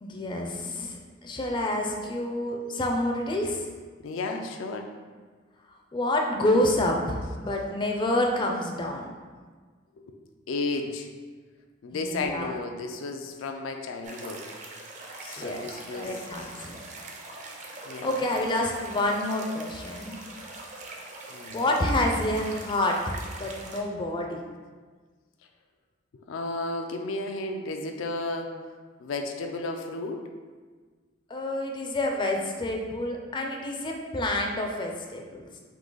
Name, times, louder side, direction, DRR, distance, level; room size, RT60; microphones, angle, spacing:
voice 1, 0.0-3.7 5.9-9.1 11.9-12.5 15.4-16.8 17.7-20.2 21.5-24.4 31.3-35.5, left 1 dB, 25° left, 1 dB, 0.4 m, -28 dB
voice 2, 4.0-4.9 10.0-10.2 10.5-11.1 11.8-14.5 15.2-16.2 16.7-16.8 17.9-18.2 21.3-21.6 26.3-28.5 29.0-30.2, left 2 dB, 85° left, 4 dB, 0.4 m, -33 dB
sound 1, 14.0-23.8, right 2 dB, 40° right, 0.5 m, -42 dB
3.7 x 2.7 x 3.8 m, 1.5 s
head